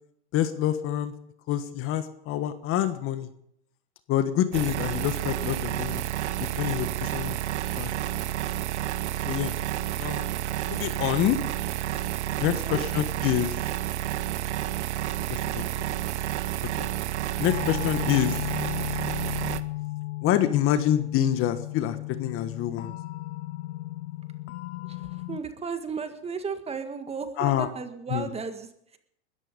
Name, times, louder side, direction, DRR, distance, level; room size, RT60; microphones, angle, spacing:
voice 1, 0.3-1.1 1.5-3.3 4.1-6.0 6.4-7.4 7.8-7.9 9.2-9.5 10.0-10.4 10.7-11.4 12.4-13.6 15.3-15.6 16.8-16.9 17.4-18.4 20.2-22.9 27.4-27.7 28.1-28.3, left 11 dB, 40° left, 11 dB, 1.4 m, -26 dB
sound 1, 4.5-19.6, right 13 dB, 75° right, 1.0 m, -30 dB
voice 2, 12.4-12.8 24.8-29.0, right 5 dB, 15° right, 8 dB, 1.7 m, -35 dB
sound 2, 17.5-25.4, left 20 dB, 75° left, 0.6 m, -35 dB
20.0 x 13.5 x 5.3 m, 0.75 s
hypercardioid pair, 115°, 35 cm